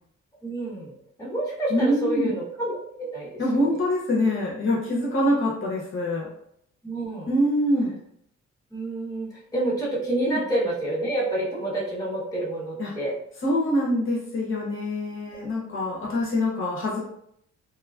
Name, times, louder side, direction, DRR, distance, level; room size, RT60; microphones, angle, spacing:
voice 1, 0.4-0.9 1.2-3.8 6.8-7.3 8.7-13.1 15.8-15.9, right 1 dB, 10° left, -6 dB, 0.8 m, -28 dB
voice 2, 1.7-2.3 3.4-6.3 7.3-8.0 10.3-10.4 12.8-12.9 13.4-17.0, left 1 dB, 45° left, -4 dB, 0.7 m, -24 dB
3.0 x 2.3 x 2.3 m, 0.71 s
wide cardioid pair, 150°, 29 cm